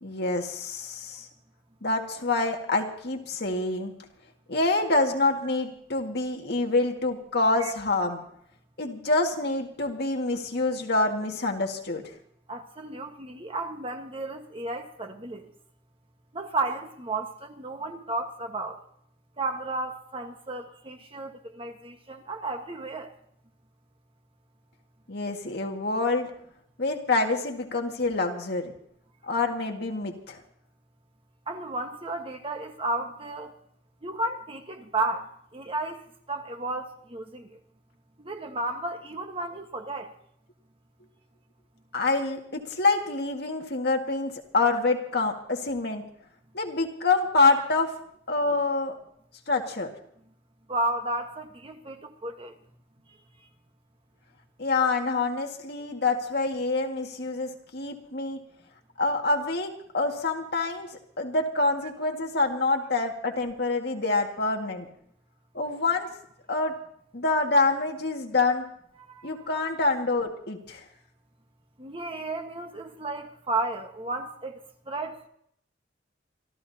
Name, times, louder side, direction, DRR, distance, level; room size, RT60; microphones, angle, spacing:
voice 1, 0.0-1.3 1.8-3.9 4.5-8.2 8.8-12.0 25.1-26.3 26.8-28.7 29.3-30.4 41.9-46.0 46.5-47.9 48.3-49.0 49.5-49.9 54.6-58.4 59.0-60.9 61.2-64.9 65.5-66.1 66.5-66.7 67.1-68.6 69.2-70.8, left 3 dB, 60° left, 2.0 m, -26 dB
voice 2, 12.5-15.5 16.3-18.8 19.4-23.1 31.5-33.5 34.0-36.0 36.3-37.6 38.2-40.1 50.7-52.5 69.1-69.5 71.8-75.3, right 2 dB, 30° right, 1.4 m, -33 dB
26.5 x 14.0 x 2.9 m
head